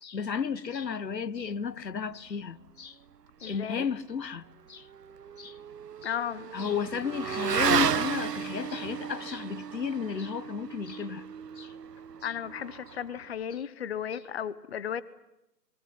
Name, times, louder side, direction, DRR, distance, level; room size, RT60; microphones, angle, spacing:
voice 1, 0.0-3.0 3.4-4.9 5.4-5.6 6.0-6.1 6.5-11.3 11.6-11.7 12.2-12.3, left 6 dB, 85° left, 1.3 m, -33 dB
voice 2, 3.4-3.8 6.0-6.5 12.2-15.0, left 8 dB, 40° left, 1.0 m, -35 dB
Motorcycle / Accelerating revving vroom, 4.7-13.4, right 8 dB, 75° right, 1.1 m, -33 dB
27.0 x 21.5 x 9.7 m
hypercardioid pair, 155°, 49 cm